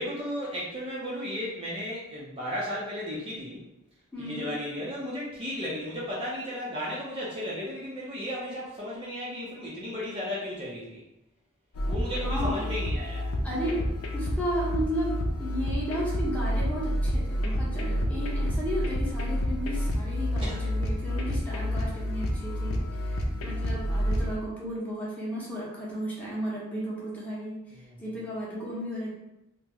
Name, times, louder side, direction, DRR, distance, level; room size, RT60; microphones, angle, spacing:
voice 1, 0.0-3.6 4.2-11.0 11.9-13.3 20.4-20.6 23.4-23.5 27.8-27.9, equal, 25° right, -6 dB, 0.6 m, -34 dB
voice 2, 4.1-4.6 12.2-12.7 13.4-29.1, equal, 5° left, -7 dB, 0.9 m, -34 dB
sound 1, 11.8-24.4, equal, 80° left, 0.5 m, -29 dB
3.0 x 2.1 x 3.5 m, 0.89 s
head